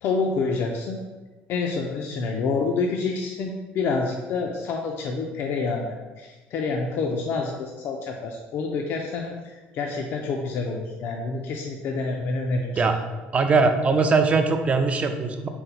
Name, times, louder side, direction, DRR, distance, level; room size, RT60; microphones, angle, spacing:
voice 1, 0.0-1.0 1.5-12.8, left 4 dB, 60° left, 1 dB, 0.4 m, -28 dB
voice 2, 13.3-15.5, right 4 dB, 30° right, 7 dB, 0.4 m, -21 dB
4.2 x 2.0 x 3.9 m, 1.2 s
cardioid pair, 110°, 4 cm